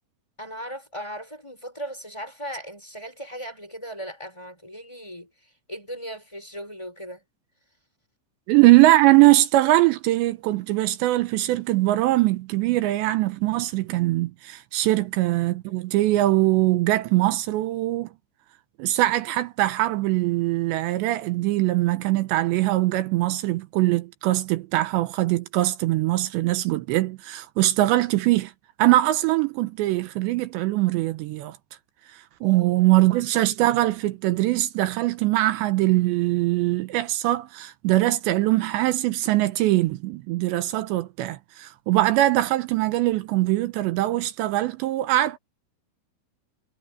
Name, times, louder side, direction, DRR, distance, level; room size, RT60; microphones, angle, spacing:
voice 1, 0.4-5.3 5.7-7.2 15.0-15.1 32.4-32.9, equal, 5° left, 5.0 m, -37 dB
voice 2, 8.5-18.1 18.8-28.5 28.8-31.6 32.1-45.4, right 17 dB, 80° right, 2.7 m, -22 dB
omnidirectional pair, 5.8 m